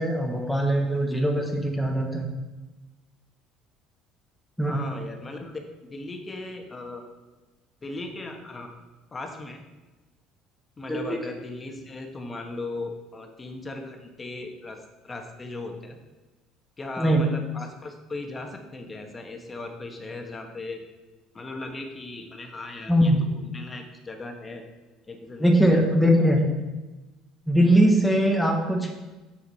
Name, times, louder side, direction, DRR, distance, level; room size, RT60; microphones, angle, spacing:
voice 1, 0.0-2.3 4.6-4.8 10.9-11.2 17.0-17.2 22.9-23.2 25.4-26.4 27.5-28.9, right 1 dB, ahead, 0 dB, 1.1 m, -21 dB
voice 2, 4.7-7.1 7.8-8.7 9.1-9.6 10.8-16.0 16.8-20.8 21.3-24.6 25.1-26.3, left 2 dB, 25° left, 4 dB, 1.3 m, -38 dB
7.5 x 6.7 x 4.1 m, 1.1 s
supercardioid pair, 100°, 0 cm